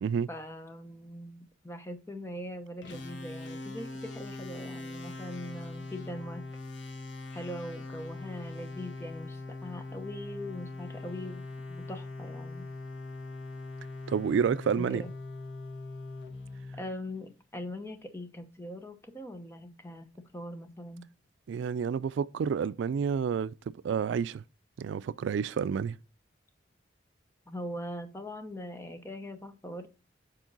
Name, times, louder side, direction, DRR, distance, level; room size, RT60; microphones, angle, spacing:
voice 1, 0.3-6.5 7.3-12.7 14.8-15.1 16.8-21.1 27.5-29.9, left 1 dB, 15° left, 0.8 m, -41 dB
sound 1, 2.8-17.4, left 3 dB, 75° left, 1.3 m, -42 dB
voice 2, 14.1-15.0 21.5-24.4 24.8-26.0, right 6 dB, 75° right, 0.3 m, -29 dB
7.3 x 4.4 x 3.8 m
head